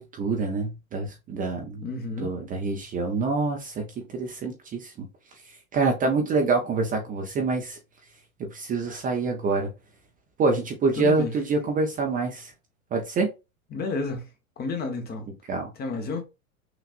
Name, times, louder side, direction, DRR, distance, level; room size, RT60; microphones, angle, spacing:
voice 1, 0.0-1.8 2.2-3.9 4.1-5.1 5.7-7.8 8.4-9.7 10.4-12.5 12.9-13.3 15.5-15.7, right 3 dB, 20° right, 0.6 m, -26 dB
voice 2, 1.8-2.3 10.9-11.3 13.7-14.3 14.6-15.3 15.8-16.2, left 4 dB, 20° left, 0.9 m, -31 dB
5.9 x 2.5 x 2.5 m
hypercardioid pair, 110°, 44 cm